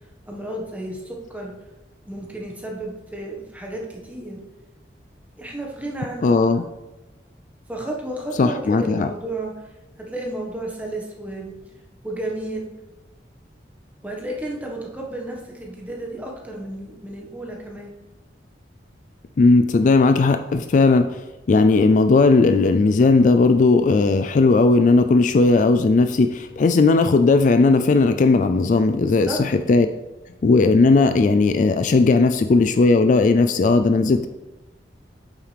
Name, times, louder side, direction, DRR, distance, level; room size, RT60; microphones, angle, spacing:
voice 1, 0.3-1.5 2.1-4.4 5.4-6.6 7.7-9.7 10.0-11.5 12.0-12.7 14.0-17.9 29.0-29.4, right 1 dB, 10° right, -1 dB, 1.4 m, -32 dB
voice 2, 6.2-6.6 8.4-9.1 19.4-21.2 21.5-29.9 30.4-34.3, left 3 dB, 45° left, 9 dB, 0.3 m, -16 dB
8.7 x 7.3 x 3.4 m, 1.1 s
head